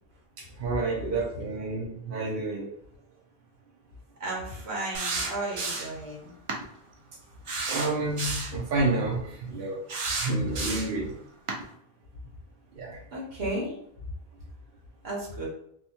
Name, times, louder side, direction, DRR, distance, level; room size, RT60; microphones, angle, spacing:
voice 1, 0.6-2.7 7.7-9.8 10.2-11.1 12.8-13.0, right 2 dB, 65° right, -3 dB, 0.8 m, -29 dB
voice 2, 4.2-6.4 13.1-13.7 15.0-15.5, right 1 dB, 85° right, -4 dB, 1.3 m, -34 dB
sound 1, 4.9-6.0 6.5-6.6 7.5-8.6 9.9-11.0 11.5-11.6, right 3 dB, 50° right, 0.3 m, -31 dB
2.7 x 2.2 x 2.7 m, 0.71 s
omnidirectional pair, 1.1 m